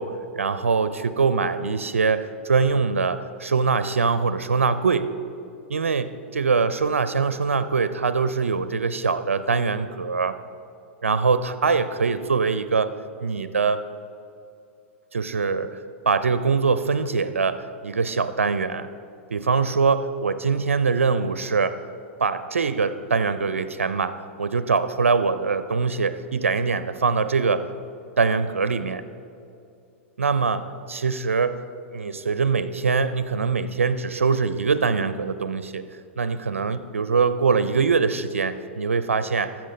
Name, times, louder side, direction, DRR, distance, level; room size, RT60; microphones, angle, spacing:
voice 1, 0.0-5.1 5.7-10.3 11.0-12.9 13.2-13.8 15.1-15.8 16.1-18.9 19.3-21.8 22.2-27.6 28.2-29.0 30.2-31.6 31.9-35.8 36.2-39.5, right 5 dB, 90° right, 13 dB, 0.4 m, -23 dB
14.5 x 6.0 x 5.2 m, 2.5 s
hypercardioid pair, 105°, 7 cm